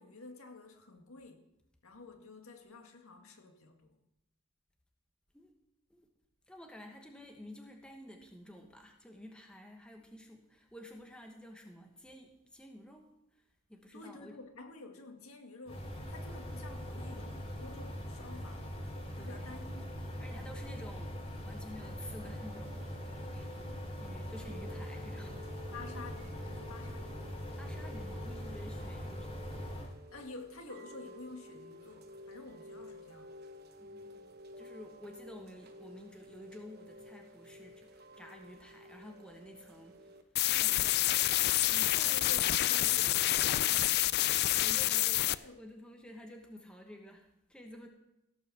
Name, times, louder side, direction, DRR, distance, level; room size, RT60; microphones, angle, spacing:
voice 1, 0.0-1.4 1.8-4.0 13.9-18.7 19.2-19.9 25.7-27.5 30.1-33.3 41.9-43.5 45.3-45.6, left 3 dB, 75° left, 3 dB, 1.9 m, -50 dB
voice 2, 6.5-13.1 13.7-14.4 19.2-19.5 20.1-22.8 23.3-25.4 27.6-29.7 33.8-40.2 40.5-41.3 41.5-43.6 44.0-47.9, equal, 5° left, 3 dB, 1.1 m, -51 dB
sound 1, 15.7-29.9, equal, 25° left, 2.5 m, -42 dB
Chime / Rain, 21.8-40.2, left 1 dB, 45° right, 1.1 m, -52 dB
sound 2, 40.4-45.4, left 15 dB, 50° left, 0.3 m, -28 dB
16.5 x 5.6 x 7.2 m, 0.88 s
head